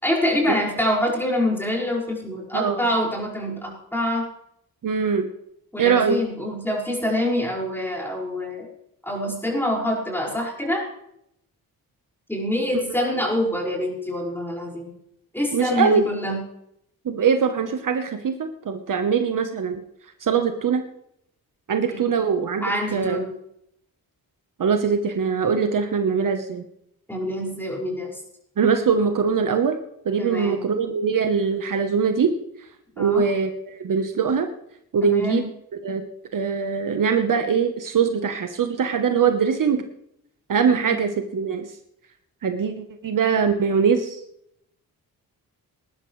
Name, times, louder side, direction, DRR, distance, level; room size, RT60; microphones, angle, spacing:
voice 1, 0.0-4.3 5.7-8.7 9.0-10.8 12.3-14.9 15.3-16.4 21.9-22.3 22.6-23.3 27.1-28.2 30.2-30.6 33.0-33.2 35.0-35.4 40.8-41.0, left 1 dB, 5° left, -2 dB, 5.5 m, -25 dB
voice 2, 2.5-2.8 4.8-5.3 5.8-6.2 12.9-13.0 15.5-16.0 17.0-19.8 20.2-20.9 21.7-23.2 24.6-26.6 28.6-29.8 30.0-32.3 33.0-34.5 34.9-35.5 35.8-36.0 36.3-39.9 40.5-41.7 42.4-44.2, right 6 dB, 60° right, 6 dB, 1.1 m, -22 dB
20.0 x 11.5 x 3.3 m, 0.75 s
cardioid pair, 95°, 36 cm